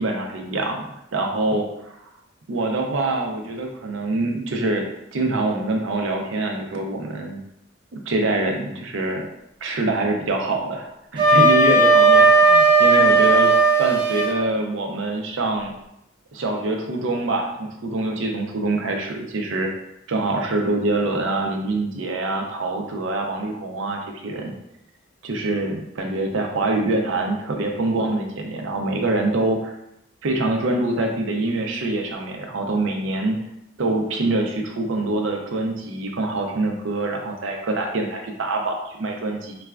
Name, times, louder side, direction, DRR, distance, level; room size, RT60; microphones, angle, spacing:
voice 1, 0.0-2.1 2.5-7.4 7.9-9.2 9.6-13.5 13.8-15.7 16.3-19.7 20.1-24.5 25.2-29.7 30.2-33.4 33.8-39.6, right 2 dB, 75° right, 2 dB, 0.5 m, -25 dB
Wind instrument woodwind instrument, 11.2-14.4, right 3 dB, 25° right, 0.9 m, -15 dB
4.0 x 2.2 x 2.3 m, 0.81 s
head